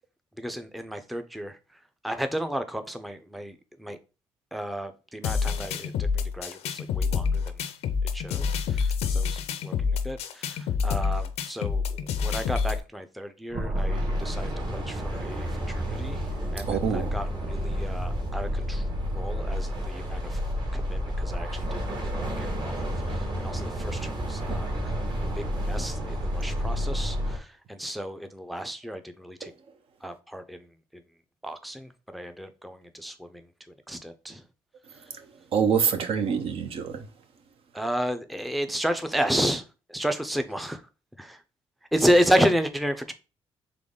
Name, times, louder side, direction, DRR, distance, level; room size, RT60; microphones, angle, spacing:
voice 1, 0.4-4.0 4.5-7.4 8.1-18.9 19.1-20.4 20.7-25.0 25.4-29.5 30.0-30.7 31.4-33.5 33.9-34.4 34.9-35.0 37.7-40.9 41.2-41.4 41.9-43.1, equal, ahead, 0.5 m, -32 dB
sound 1, 5.2-12.8, left 6 dB, 80° left, 0.5 m, -27 dB
sound 2, 13.5-27.4, equal, 45° right, 1.5 m, -30 dB
voice 2, 16.7-17.1 24.5-24.6 29.4-29.5 35.2-35.3 35.5-37.1 42.0-42.1, right 6 dB, 60° right, 0.7 m, -26 dB
3.8 x 3.5 x 3.7 m
cardioid pair, 95°, 11 cm